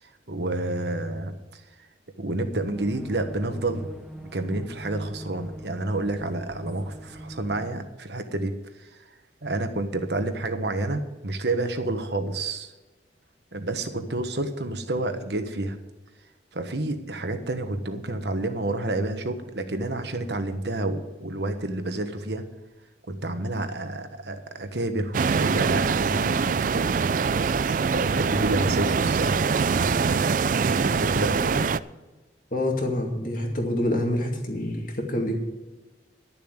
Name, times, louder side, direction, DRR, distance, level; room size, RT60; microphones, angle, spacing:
voice 1, 0.3-1.6 2.2-3.9 4.3-8.5 9.4-12.7 13.5-15.8 16.5-22.4 23.1-27.2 27.9-31.7, right 2 dB, 65° right, 7 dB, 1.3 m, -29 dB
sound 1, 2.7-7.7, right 1 dB, ahead, 1.0 m, -42 dB
sound 2, 25.1-31.8, right 5 dB, 45° right, 0.3 m, -24 dB
voice 2, 32.5-35.4, left 1 dB, 45° left, 1 dB, 2.4 m, -26 dB
12.0 x 7.2 x 8.1 m, 1.2 s
head